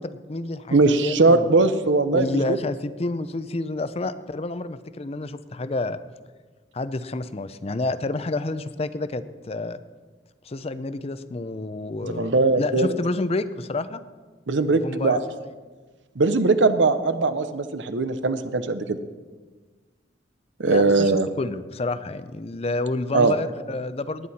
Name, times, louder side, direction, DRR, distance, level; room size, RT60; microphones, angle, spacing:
voice 1, 0.0-1.6 2.1-6.0 6.7-9.8 10.4-14.0 14.7-15.2 20.6-21.1 21.4-24.3, left 2 dB, 35° left, 13 dB, 0.5 m, -29 dB
voice 2, 0.7-2.6 12.0-12.9 14.5-15.2 16.2-19.0 20.6-21.3 23.1-23.3, right 3 dB, 75° right, 11 dB, 0.8 m, -20 dB
19.0 x 9.5 x 4.2 m, 1.4 s
head